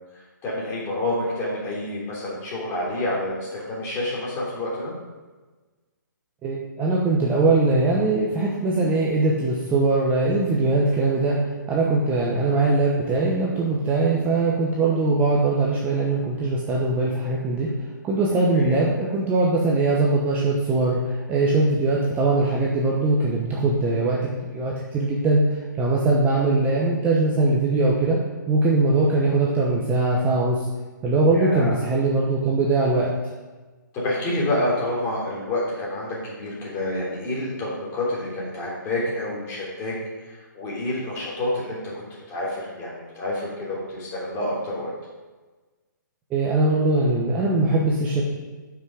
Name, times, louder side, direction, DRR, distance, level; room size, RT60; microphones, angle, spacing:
voice 1, 0.4-4.9 18.5-18.8 26.6-26.8 31.3-31.8 33.9-39.9 40.2-41.8 42.1-44.9, left 1 dB, 20° left, -5 dB, 3.2 m, -28 dB
voice 2, 6.4-17.7 18.0-28.2 28.5-30.7 31.0-33.1 46.3-48.2, right 2 dB, 15° right, -3 dB, 1.0 m, -21 dB
9.0 x 6.0 x 5.1 m, 1.3 s
hypercardioid pair, 150°, 11 cm